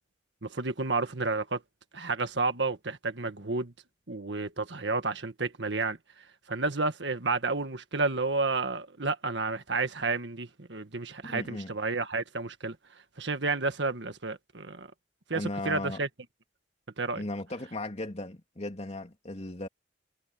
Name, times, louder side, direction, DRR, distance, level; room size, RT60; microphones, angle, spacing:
voice 1, 0.4-1.6 1.9-3.7 4.1-6.0 6.5-12.7 13.2-14.9 15.3-16.1 17.0-17.2, right 3 dB, 70° right, 1.7 m, -31 dB
voice 2, 11.2-11.8 15.3-16.0 17.2-19.7, left 2 dB, 35° left, 3.0 m, -36 dB
head